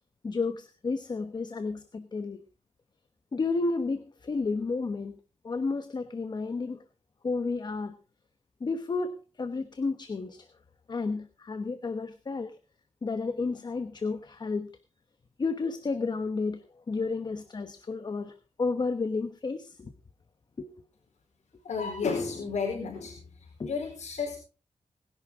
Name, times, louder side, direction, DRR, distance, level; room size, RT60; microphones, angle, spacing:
voice 1, 0.2-2.4 3.3-5.2 5.4-6.8 7.2-7.9 8.6-10.5 10.9-12.6 13.0-14.7 15.4-19.9 20.6-20.7 23.6-23.7, left 4 dB, 40° left, 10 dB, 1.1 m, -32 dB
voice 2, 21.6-23.2 23.6-24.4, left 5 dB, 85° left, 0 dB, 4.5 m, -32 dB
20.5 x 11.0 x 3.6 m, 0.34 s
wide cardioid pair, 135°, 12 cm